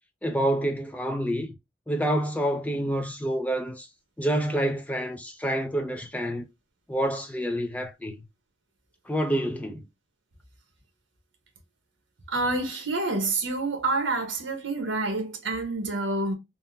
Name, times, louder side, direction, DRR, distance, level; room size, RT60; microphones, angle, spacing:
voice 1, 0.2-1.5 1.9-3.9 4.2-6.4 6.9-8.2 9.1-9.8, right 1 dB, 10° left, 0.4 m, -28 dB
voice 2, 12.3-16.3, right 2 dB, 85° right, 1.1 m, -28 dB
3.5 x 2.1 x 2.7 m
head